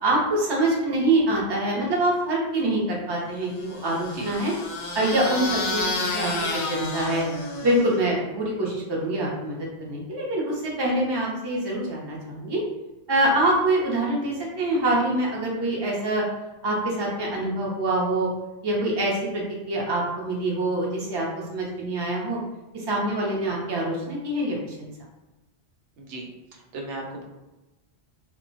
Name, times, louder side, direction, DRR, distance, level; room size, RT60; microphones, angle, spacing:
voice 1, 0.0-4.5 4.9-5.8 6.1-7.2 7.6-12.6 13.1-16.2 16.6-18.3 18.6-22.4 22.7-24.9, right 1 dB, 30° right, -4 dB, 0.5 m, -25 dB
sound 1, 3.6-8.1, left 2 dB, 60° left, 0.4 m, -30 dB
voice 2, 26.5-27.2, right 2 dB, 80° right, 0 dB, 0.9 m, -36 dB
2.2 x 2.1 x 3.8 m, 1.0 s
omnidirectional pair, 1.2 m